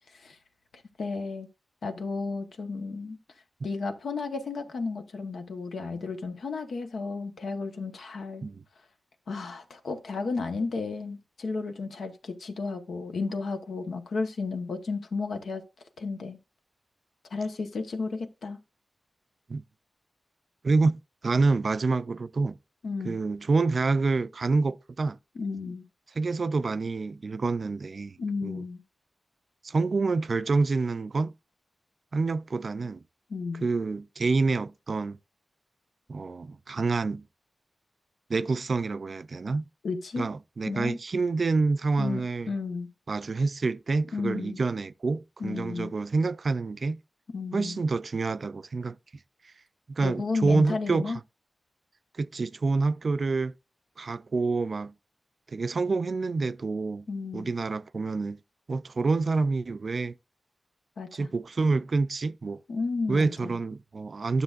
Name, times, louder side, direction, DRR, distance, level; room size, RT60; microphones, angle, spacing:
voice 1, 1.0-1.5 1.8-3.2 3.6-8.4 9.3-15.6 16.0-16.4 17.3-18.6 22.8-23.2 25.3-25.8 28.2-28.8 33.3-33.7 39.8-40.3 40.7-41.0 42.0-42.9 44.1-44.6 45.4-45.9 47.3-47.8 50.0-51.2 57.1-57.5 61.0-61.3 62.7-63.6, left 4 dB, 90° left, 1.1 m, -33 dB
voice 2, 20.6-22.6 23.0-25.2 26.2-28.6 29.6-31.3 32.1-33.0 33.6-35.2 36.1-37.3 38.3-39.7 40.2-42.5 43.1-47.0 47.5-49.0 49.4-49.5 50.0-51.1 52.2-53.5 54.0-54.9 55.5-57.1 57.3-58.4 58.7-60.2 61.1-62.6 63.1-64.4, right 3 dB, 55° right, 0.3 m, -27 dB
12.0 x 6.8 x 2.5 m
wide cardioid pair, 90°, 0 cm